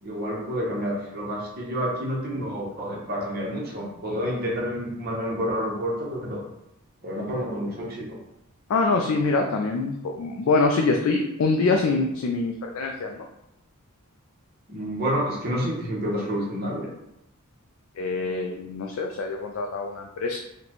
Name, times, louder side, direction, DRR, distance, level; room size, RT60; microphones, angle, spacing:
voice 1, 0.0-6.4 7.0-8.2 14.7-16.9, equal, 45° right, -4 dB, 0.9 m, -29 dB
voice 2, 8.7-13.3 18.0-20.4, left 3 dB, 65° left, 2 dB, 0.3 m, -24 dB
3.9 x 2.2 x 3.0 m, 0.85 s
head